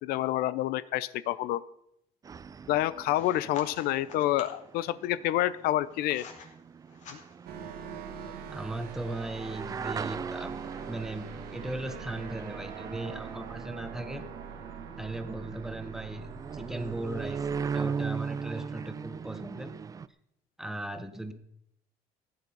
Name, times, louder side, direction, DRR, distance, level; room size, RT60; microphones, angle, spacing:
voice 1, 0.0-1.6 2.7-6.3 7.1-7.2, left 14 dB, 85° left, 17 dB, 0.6 m, -28 dB
sound 1, 2.2-20.1, right 6 dB, 25° right, 0.4 m, -39 dB
sound 2, 3.1-4.7 5.5-6.5 6.9-7.6, left 5 dB, 50° left, 2.6 m, -47 dB
sound 3, 7.5-17.8, right 7 dB, 85° right, 1.9 m, -44 dB
voice 2, 8.5-14.3 15.0-19.7 20.6-21.3, right 1 dB, 5° right, 9 dB, 1.0 m, -38 dB
15.5 x 9.9 x 5.4 m, 0.76 s
cardioid pair, 145°, 15 cm